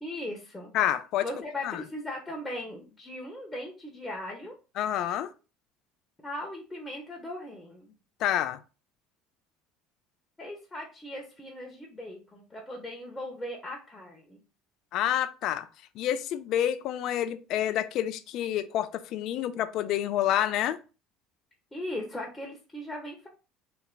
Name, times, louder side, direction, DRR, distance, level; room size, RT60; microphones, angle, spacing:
voice 1, 0.0-0.8 1.2-4.5 6.2-7.9 10.4-14.4 21.7-23.3, left 1 dB, 10° left, 1.0 m, -38 dB
voice 2, 0.7-1.2 1.6-1.8 4.8-5.3 8.2-8.6 14.9-15.7 16.0-20.8, left 11 dB, 60° left, 0.4 m, -28 dB
3.3 x 2.1 x 3.8 m
supercardioid pair, 90°, 0 cm